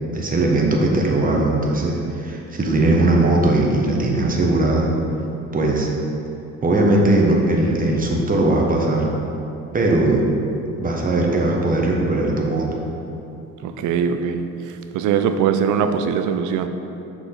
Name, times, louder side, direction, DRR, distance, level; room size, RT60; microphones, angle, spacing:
voice 1, 0.1-4.9 5.5-5.9 6.6-9.1 9.7-10.2 10.8-12.7, right 2 dB, 30° right, -1 dB, 1.1 m, -19 dB
voice 2, 13.6-14.4 14.9-16.7, right 7 dB, 85° right, 8 dB, 0.5 m, -21 dB
6.1 x 4.9 x 3.8 m, 2.8 s
cardioid pair, 90°, 30 cm